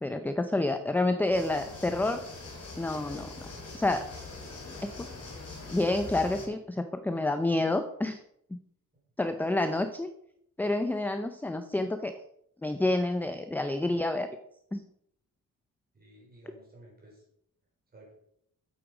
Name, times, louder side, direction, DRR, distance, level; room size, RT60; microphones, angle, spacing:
voice 1, 0.0-2.2 2.8-3.5 3.7-4.1 4.8-4.9 5.7-8.2 8.5-8.6 9.2-10.1 10.6-12.1 12.6-14.3 14.7-14.9, left 2 dB, 5° left, 8 dB, 0.4 m, -28 dB
sound 1, 1.3-6.5, left 3 dB, 45° left, 3.9 m, -43 dB
voice 2, 15.9-17.2 17.9-18.1, right 1 dB, 25° right, -2 dB, 4.5 m, -54 dB
8.9 x 7.9 x 5.0 m, 0.72 s
wide cardioid pair, 170°, 34 cm